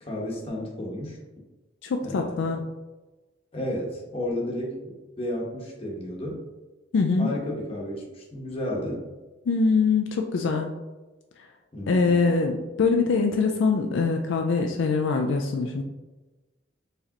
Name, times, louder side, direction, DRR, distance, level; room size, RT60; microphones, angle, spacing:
voice 1, 0.0-1.2 2.0-2.5 3.5-6.4 7.2-9.0 11.7-12.2, left 1 dB, 30° left, -2 dB, 1.0 m, -32 dB
voice 2, 1.8-2.6 6.9-7.3 9.5-10.7 11.9-15.8, left 4 dB, 70° left, 3 dB, 0.4 m, -23 dB
4.7 x 3.3 x 2.9 m, 1.1 s
head